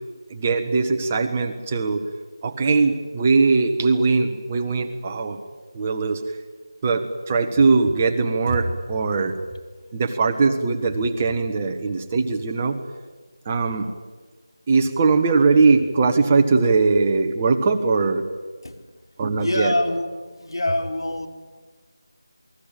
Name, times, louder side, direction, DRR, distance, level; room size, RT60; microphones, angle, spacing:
voice 1, 0.3-2.0 2.4-5.4 5.7-6.2 6.8-9.4 9.9-12.8 13.4-13.9 14.7-18.2 19.2-19.7, right 4 dB, 20° right, 5 dB, 1.3 m, -20 dB
voice 2, 19.4-20.1 20.4-21.3, left 1 dB, 80° left, 5 dB, 4.6 m, -24 dB
28.0 x 20.5 x 9.0 m, 1.4 s
figure-of-eight pair, 170°, 2 cm